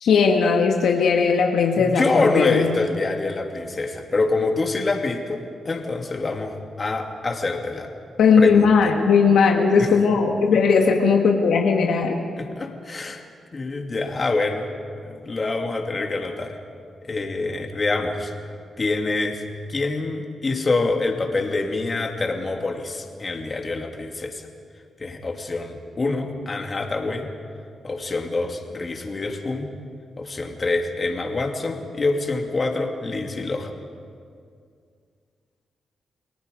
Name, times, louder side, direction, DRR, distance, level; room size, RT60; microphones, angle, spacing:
voice 1, 0.0-2.8 8.2-12.2, left 5 dB, 80° left, 2 dB, 1.6 m, -18 dB
voice 2, 1.8-7.9 8.4-8.7 9.8-9.9 12.4-13.2 13.5-14.7 15.0-16.6 17.0-18.3 18.8-19.4 19.7-24.4 25.0-27.3 27.8-29.7 30.2-33.7, left 3 dB, 35° left, 3 dB, 2.6 m, -26 dB
29.5 x 18.5 x 5.3 m, 2.2 s
cardioid pair, 70°, 0 cm